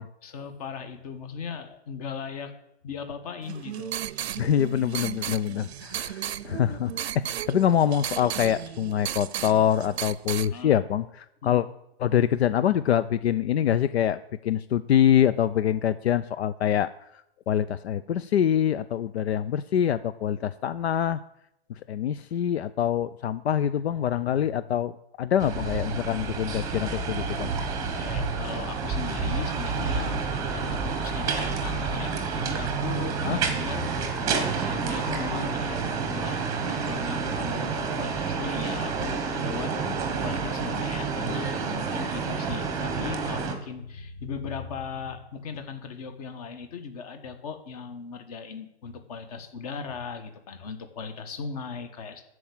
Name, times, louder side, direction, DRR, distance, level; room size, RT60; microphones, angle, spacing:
voice 1, 0.2-2.5 2.8-3.9 6.4-6.5 10.5-10.8 11.4-11.6 27.8-30.1 30.5-34.0 34.3-39.7 40.2-52.2, left 5 dB, 35° left, 8 dB, 1.4 m, -38 dB
sound 1, 3.4-10.5, right 11 dB, 70° right, 0.6 m, -35 dB
voice 2, 4.4-11.0 11.4-11.7 12.0-21.2 21.9-24.9 25.2-27.5 33.2-33.4, left 10 dB, 75° left, 14 dB, 0.6 m, -25 dB
sound 2, 25.4-43.5, right 5 dB, 10° right, 1.1 m, -29 dB
13.0 x 4.8 x 8.7 m, 0.79 s
hypercardioid pair, 165°, 33 cm